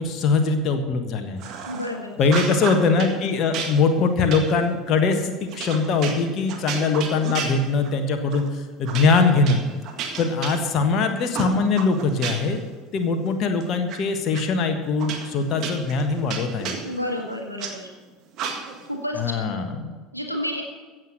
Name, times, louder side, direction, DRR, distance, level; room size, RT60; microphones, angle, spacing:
voice 1, 0.0-1.4 2.2-9.6 10.2-12.6 12.9-16.7 19.2-19.9, left 4 dB, 40° left, 5 dB, 1.4 m, -22 dB
sound 1, 1.4-1.9 2.2-3.2 3.5-8.0 8.3-8.5 8.9-11.0 11.3-12.6 13.0-14.0 14.3-14.4 15.0-17.7 18.3-18.9, right 6 dB, 45° right, 1.8 m, -33 dB
voice 2, 1.7-2.2 16.8-17.9 18.9-19.6 20.1-20.6, left 1 dB, 90° left, 2 dB, 1.4 m, -30 dB
15.5 x 7.9 x 6.6 m, 1.4 s
figure-of-eight pair, 70°, 0 cm